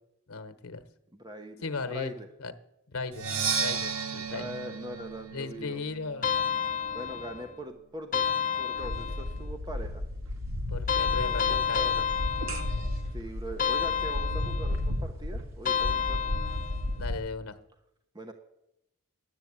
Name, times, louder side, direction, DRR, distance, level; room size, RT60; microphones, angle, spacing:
voice 1, 0.3-0.8 1.6-2.5 2.9-3.3 3.6-4.5 5.3-6.3 10.7-12.1 16.9-17.6, left 3 dB, 85° left, 10 dB, 1.1 m, -36 dB
voice 2, 1.1-2.3 4.3-5.8 6.9-8.3 8.6-10.0 11.1-11.2 11.5-12.0 13.1-16.2 18.1-18.3, equal, 20° right, 5 dB, 0.9 m, -41 dB
Percussion, 3.1-6.9, right 6 dB, 85° right, 1.1 m, -34 dB
sound 1, 6.2-7.5 8.1-9.4 10.9-13.1 13.6-14.9 15.7-17.0, left 7 dB, 40° left, 1.1 m, -30 dB
sound 2, 8.8-17.2, left 1 dB, 70° right, 1.8 m, -33 dB
10.5 x 9.0 x 8.7 m, 0.86 s
head